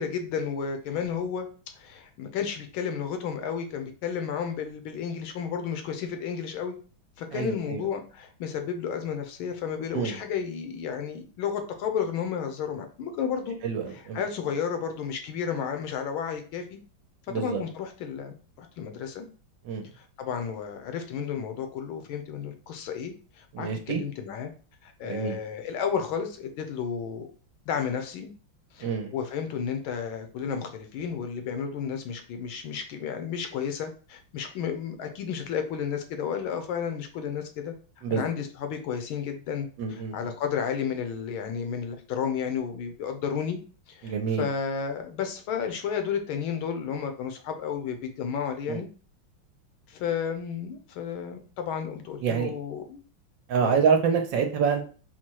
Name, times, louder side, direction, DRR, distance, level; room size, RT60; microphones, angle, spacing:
voice 1, 0.0-1.5 1.7-6.7 7.2-13.6 13.9-16.8 17.3-19.3 20.0-24.5 24.8-27.3 27.7-28.3 28.7-37.7 38.1-43.6 43.9-48.9 49.9-53.0 53.6-53.8, left 7 dB, 80° left, 6 dB, 1.5 m, -32 dB
voice 2, 7.3-7.8 9.9-10.2 13.6-14.2 17.3-17.6 19.6-19.8 23.5-24.0 25.0-25.4 28.8-29.1 38.0-38.2 39.8-40.1 44.0-44.5 48.7-48.8 52.2-52.5 53.5-54.8, right 6 dB, 70° right, 4 dB, 1.3 m, -26 dB
4.3 x 2.2 x 4.5 m, 0.38 s
omnidirectional pair, 2.2 m